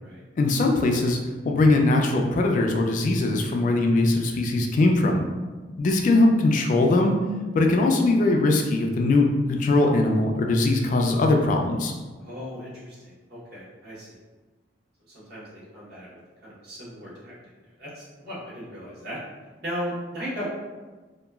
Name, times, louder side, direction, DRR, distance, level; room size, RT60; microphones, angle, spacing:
voice 1, 0.4-1.2 1.4-5.2 5.8-7.2 7.5-11.9, left 2 dB, 45° left, 2 dB, 0.3 m, -21 dB
voice 2, 12.2-14.2 15.1-16.1 16.4-17.3 17.8-19.2 19.6-20.5, equal, 60° right, -8 dB, 1.0 m, -36 dB
2.9 x 2.3 x 2.3 m, 1.3 s
head